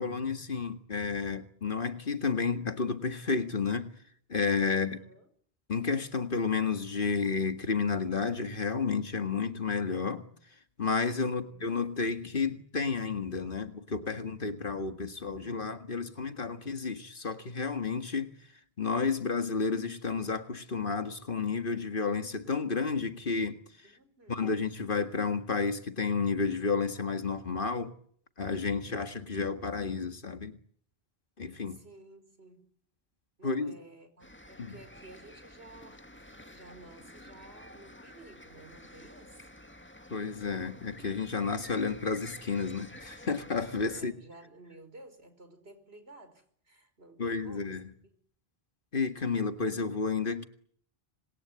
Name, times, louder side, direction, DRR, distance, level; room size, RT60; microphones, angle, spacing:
voice 1, 0.0-4.0 4.3-5.0 5.7-10.3 10.8-18.4 18.8-23.6 24.3-27.9 28.4-30.6 31.4-31.8 33.4-33.7 34.6-34.8 40.1-44.1 47.2-47.9 48.9-50.5, left 4 dB, 55° left, 9 dB, 1.9 m, -31 dB
voice 2, 4.7-5.3 11.3-11.7 23.8-24.5 31.7-32.7 33.4-39.5 43.9-47.8, right 2 dB, 75° right, 9 dB, 5.5 m, -53 dB
sound 1, 34.2-44.0, left 1 dB, 10° left, 1.7 m, -50 dB
27.0 x 21.5 x 9.6 m, 0.62 s
omnidirectional pair, 1.1 m